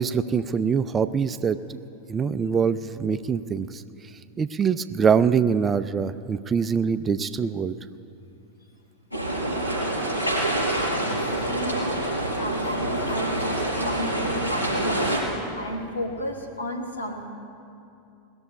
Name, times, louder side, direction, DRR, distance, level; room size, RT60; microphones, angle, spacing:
voice 1, 0.0-1.8 2.1-3.8 4.4-7.8, right 6 dB, 20° right, 12 dB, 0.4 m, -24 dB
sound 1, 9.1-15.2, right 1 dB, 90° left, 4.4 m, -26 dB
voice 2, 10.7-12.0 12.4-15.1 15.6-17.3, equal, 70° left, 2 dB, 1.9 m, -33 dB
19.5 x 7.1 x 9.8 m, 2.7 s
figure-of-eight pair, 90°, 0 cm